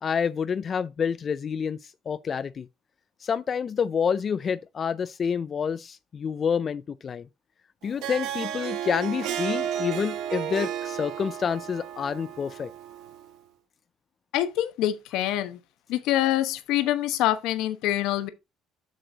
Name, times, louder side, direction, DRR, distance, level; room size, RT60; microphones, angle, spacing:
voice 1, 0.0-2.7 3.2-7.3 7.8-12.7, left 7 dB, 35° left, 0.4 m, -28 dB
Harp, 7.8-13.3, right 10 dB, 85° right, 2.0 m, -33 dB
voice 2, 14.3-15.6 15.9-18.3, left 13 dB, 80° left, 1.1 m, -25 dB
7.8 x 6.4 x 3.9 m
cardioid pair, 135°, 0 cm